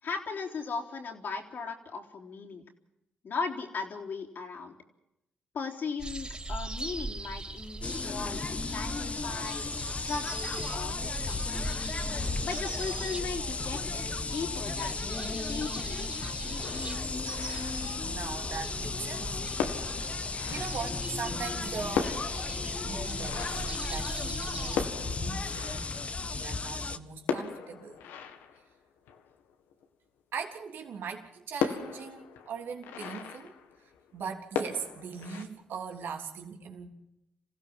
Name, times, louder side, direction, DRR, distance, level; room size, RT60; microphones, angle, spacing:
voice 1, 0.0-2.6 3.2-4.8 5.5-11.6 12.4-15.0 15.4-16.9, left 5 dB, 60° left, 1 dB, 3.9 m, -38 dB
sound 1, 6.0-24.8, right 2 dB, 25° right, 4.7 m, -40 dB
sound 2, 7.8-27.0, left 4 dB, 35° left, 1.4 m, -35 dB
sound 3, 16.6-18.5 19.2-19.3 19.6-21.3 21.6-21.7 21.9-26.7 27.2-29.9 30.4-30.5 30.8-30.9 31.6-34.2 34.5-35.4, left 7 dB, 90° left, 1.9 m, -38 dB
voice 2, 18.0-19.4 19.9-20.2 20.5-22.2 22.8-25.9 26.2-28.0 30.3-33.5 34.1-36.9, right 6 dB, 70° right, 4 dB, 3.5 m, -40 dB
27.0 x 16.0 x 7.5 m, 0.86 s
supercardioid pair, 60°, 4 cm